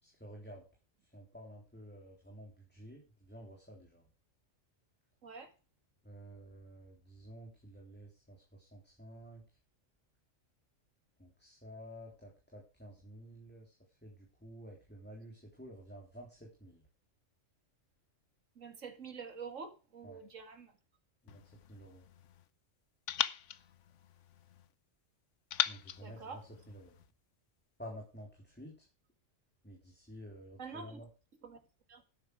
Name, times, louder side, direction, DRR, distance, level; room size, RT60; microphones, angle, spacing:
voice 1, 0.0-0.7 1.0-4.0 6.0-9.4 11.2-13.8 14.0-16.9 20.0-20.2 21.2-22.0 25.7-26.4 26.7-27.0 27.8-28.9 29.6-31.1, equal, 10° left, 3.6 m, -51 dB
voice 2, 5.2-5.5 18.6-20.8 26.0-26.4 30.6-31.0 31.4-31.6 31.9-32.0, right 5 dB, 85° right, 2.4 m, -47 dB
sound 1, 21.3-22.5 23.1-24.7 25.5-27.1, left 10 dB, 75° left, 1.1 m, -39 dB
12.0 x 9.8 x 4.8 m
omnidirectional pair, 1.3 m